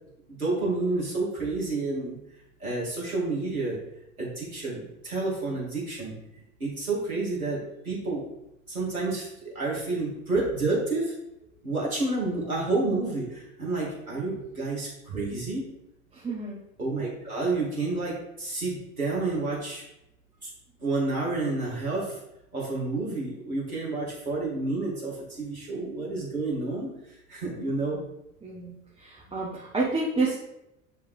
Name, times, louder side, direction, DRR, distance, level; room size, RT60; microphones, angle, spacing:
voice 1, 0.3-2.2 2.6-3.8 4.2-6.1 6.6-8.2 8.7-11.1 11.6-15.7 16.8-19.8 20.4-20.5 20.8-22.2 22.5-26.9 27.3-28.0, right 3 dB, 85° right, -5 dB, 2.4 m, -29 dB
voice 2, 16.1-16.6 27.6-27.8 28.4-30.4, right 3 dB, 15° right, -6 dB, 1.2 m, -30 dB
9.4 x 3.6 x 3.2 m, 0.86 s
figure-of-eight pair, 75°, 42 cm